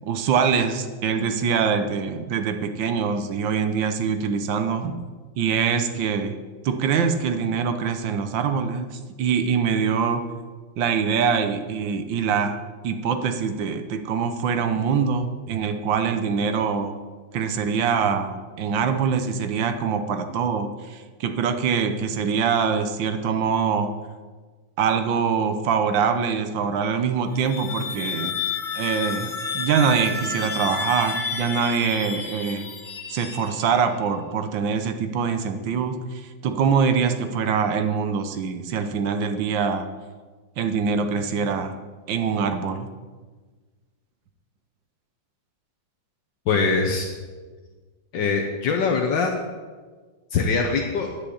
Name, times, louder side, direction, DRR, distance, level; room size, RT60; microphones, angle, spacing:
voice 1, 0.0-5.0 5.4-6.4 6.6-10.2 10.8-16.9 17.3-23.9 24.8-28.4 28.7-32.7 33.1-39.9 40.6-41.7 42.1-42.9, right 6 dB, 75° right, 8 dB, 1.5 m, -24 dB
sound 1, 27.2-33.9, left 5 dB, 40° left, 0.7 m, -31 dB
voice 2, 46.5-47.1 48.1-49.4 50.3-51.1, left 4 dB, 70° left, 1 dB, 1.6 m, -22 dB
10.0 x 5.5 x 8.5 m, 1.4 s
omnidirectional pair, 2.1 m